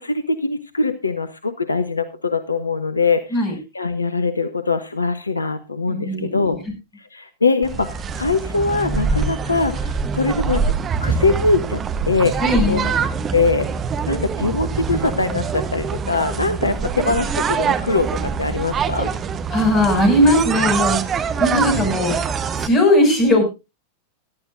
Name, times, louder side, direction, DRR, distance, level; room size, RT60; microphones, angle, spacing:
voice 1, 0.0-6.6 7.0-10.6 11.0-12.4 12.7-12.8 13.3-13.7 14.1-19.1 21.6-21.8, left 3 dB, 80° left, 12 dB, 0.8 m, -22 dB
voice 2, 5.9-6.6 12.4-13.0 19.5-22.2 22.6-23.4, left 1 dB, 30° left, 5 dB, 5.9 m, -18 dB
sound 1, 7.6-22.7, right 5 dB, 25° right, 1.0 m, -24 dB
17.5 x 12.0 x 2.6 m, 0.27 s
figure-of-eight pair, 90°, 0 cm